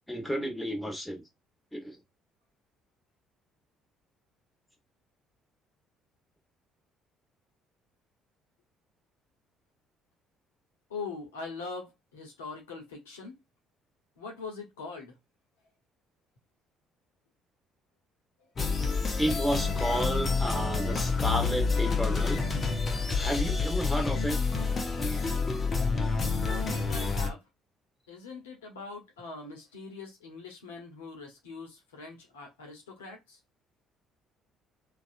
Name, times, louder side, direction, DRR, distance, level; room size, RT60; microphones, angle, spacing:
voice 1, 0.1-1.2 1.7-2.0 19.2-22.4 23.2-24.4, equal, 10° left, 1.1 m, -31 dB
voice 2, 10.9-13.4 14.2-15.2 26.4-27.4 28.1-33.4, left 4 dB, 85° left, 0.8 m, -42 dB
sound 1, 18.6-27.3, left 4 dB, 35° left, 0.8 m, -28 dB
2.7 x 2.3 x 2.5 m
hypercardioid pair, 55°, 0 cm